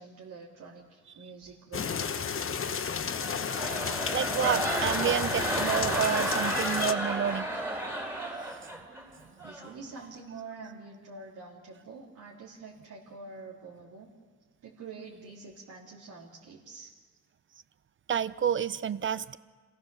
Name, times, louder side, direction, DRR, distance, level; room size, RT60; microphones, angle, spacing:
voice 1, 0.0-2.9 9.4-14.1 14.6-16.9, right 4 dB, 65° right, -4 dB, 3.2 m, -46 dB
sound 1, 1.7-6.9, left 6 dB, 40° left, 1.1 m, -33 dB
sound 2, 3.1-9.0 9.4-9.7, right 1 dB, 5° right, 4.1 m, -32 dB
voice 2, 4.1-7.5 18.1-19.4, right 8 dB, 35° right, 17 dB, 0.6 m, -29 dB
27.0 x 17.5 x 6.9 m, 1.5 s
cardioid pair, 115°, 33 cm